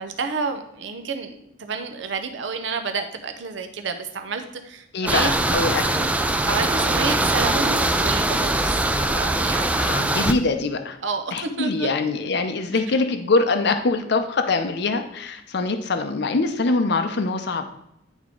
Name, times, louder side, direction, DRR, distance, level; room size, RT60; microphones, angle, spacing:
voice 1, 0.0-5.3 6.5-10.2 11.0-12.1, right 4 dB, 70° right, 6 dB, 0.7 m, -30 dB
voice 2, 4.9-6.1 9.7-11.0 11.3-17.7, left 3 dB, 60° left, 7 dB, 0.6 m, -23 dB
sound 1, 5.1-10.3, right 2 dB, 5° right, 0.3 m, -22 dB
10.5 x 3.6 x 3.7 m, 0.79 s
head